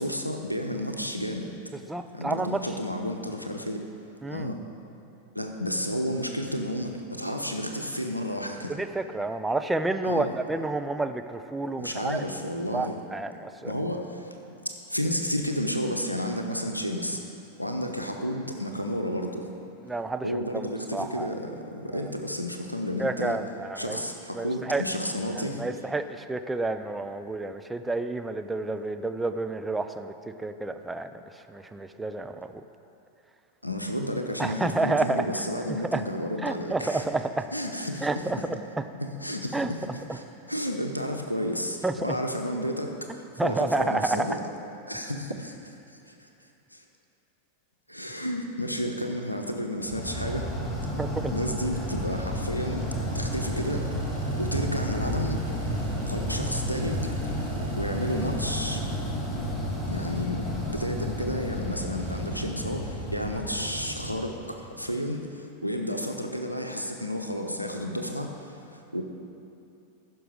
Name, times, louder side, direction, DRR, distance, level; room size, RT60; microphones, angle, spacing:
voice 1, 0.0-1.5 2.1-3.8 4.3-4.6 5.3-8.8 10.0-10.4 11.8-13.0 13.6-14.4 14.6-17.2 17.6-19.5 20.2-23.4 23.8-25.6 33.6-37.0 37.5-38.1 38.4-38.5 38.9-39.8 40.1-44.4 44.9-46.3 46.7-46.8 47.9-50.5 51.3-52.8 53.1-53.9 54.4-55.4 56.1-57.4 57.8-58.8 59.9-69.0, equal, 90° left, 3 dB, 0.7 m, -31 dB
voice 2, 1.9-2.6 4.2-4.5 8.7-12.2 12.7-13.7 19.8-20.3 20.5-20.6 20.9-21.3 21.9-22.0 23.0-24.0 24.3-24.8 25.6-31.2 31.5-32.5 34.4-35.4 35.7-36.0 36.4-37.5 38.0-38.6 39.5-40.0 41.8-42.2 43.4-44.4 51.0-51.4, right 2 dB, 10° right, 8 dB, 0.5 m, -30 dB
sound 1, 49.8-64.8, equal, 15° left, 2.0 m, -32 dB
sound 2, 53.3-59.4, right 6 dB, 70° right, 0.8 m, -41 dB
14.5 x 6.1 x 5.0 m, 2.8 s
figure-of-eight pair, 90°, 0 cm